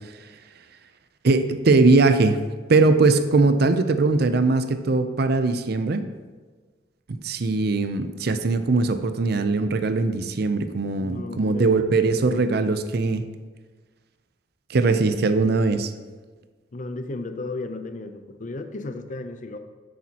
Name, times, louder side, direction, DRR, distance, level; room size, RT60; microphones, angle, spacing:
voice 1, 1.2-2.4 2.7-6.0 7.1-13.2 14.7-15.9, right 3 dB, 60° right, 10 dB, 0.5 m, -20 dB
voice 2, 11.0-12.0 12.4-12.6 16.7-19.6, left 2 dB, 45° left, 8 dB, 0.6 m, -34 dB
10.5 x 8.4 x 2.9 m, 1.4 s
head